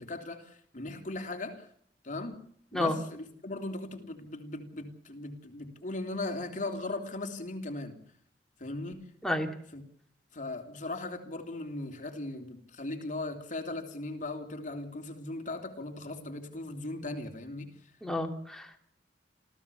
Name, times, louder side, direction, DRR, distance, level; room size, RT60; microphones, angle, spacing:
voice 1, 0.0-1.7 2.0-2.4 2.7-8.0 8.6-9.0 9.7-9.8 10.3-17.7, left 2 dB, 45° left, 3.4 m, -38 dB
voice 2, 18.0-18.8, left 1 dB, 5° left, 3.1 m, -30 dB
27.5 x 16.0 x 7.1 m
head